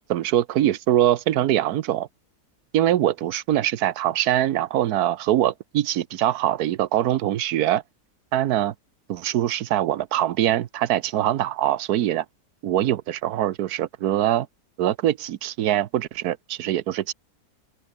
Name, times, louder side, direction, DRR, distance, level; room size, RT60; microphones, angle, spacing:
voice 1, 0.0-2.1 2.7-7.8 8.3-8.7 9.1-12.2 12.6-14.5 14.8-17.1, right 12 dB, 70° right, 1.3 m, -23 dB
open air
omnidirectional pair, 1.7 m